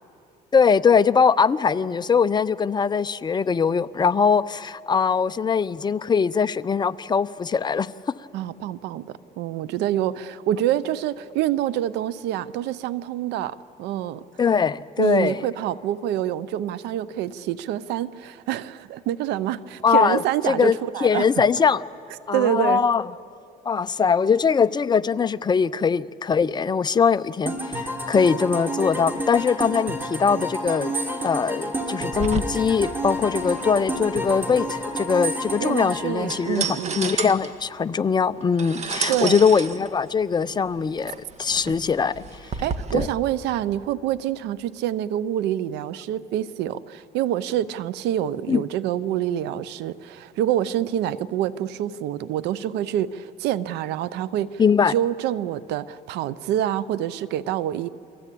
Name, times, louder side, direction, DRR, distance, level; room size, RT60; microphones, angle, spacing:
voice 1, 0.5-7.9 14.4-15.4 19.8-20.2 20.5-20.7 21.0-21.8 22.3-23.0 23.6-30.9 31.2-42.2 42.9-43.1 48.5-48.6 54.6-54.9, left 6 dB, 25° left, 0.6 m, -21 dB
voice 2, 8.3-14.2 15.0-21.3 22.3-22.8 35.6-37.0 39.1-39.4 42.6-57.9, right 11 dB, 90° right, 0.7 m, -26 dB
sound 1, 27.5-37.2, equal, 10° right, 3.2 m, -30 dB
sound 2, 32.1-43.1, right 5 dB, 40° right, 1.6 m, -33 dB
29.5 x 23.5 x 8.5 m
cardioid pair, 110°, 17 cm